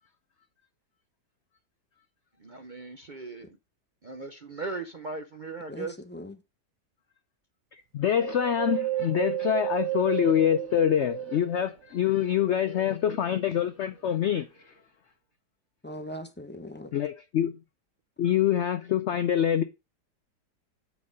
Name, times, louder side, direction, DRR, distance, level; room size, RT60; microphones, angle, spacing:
voice 1, 2.4-3.6 4.0-5.9, right 3 dB, 45° right, 0.6 m, -38 dB
voice 2, 5.7-6.3 15.8-16.9, equal, 10° left, 0.5 m, -40 dB
voice 3, 7.7-14.7 16.9-17.6 18.2-19.6, left 9 dB, 70° left, 0.6 m, -25 dB
Wind, 8.1-11.7 12.3-13.5 14.0-14.1, right 15 dB, 90° right, 1.4 m, -33 dB
8.6 x 4.7 x 5.1 m
omnidirectional pair, 1.7 m